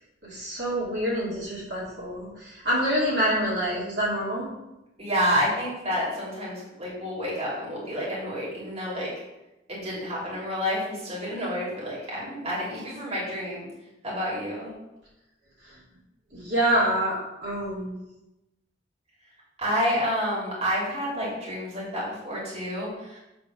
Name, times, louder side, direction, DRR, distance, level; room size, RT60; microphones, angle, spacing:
voice 1, 0.2-4.5 16.3-17.9, right 1 dB, 55° right, -7 dB, 2.7 m, -26 dB
voice 2, 5.0-9.1 9.7-13.7 14.0-14.7 19.6-23.2, equal, 30° right, -7 dB, 2.5 m, -29 dB
8.3 x 3.4 x 6.0 m, 0.95 s
head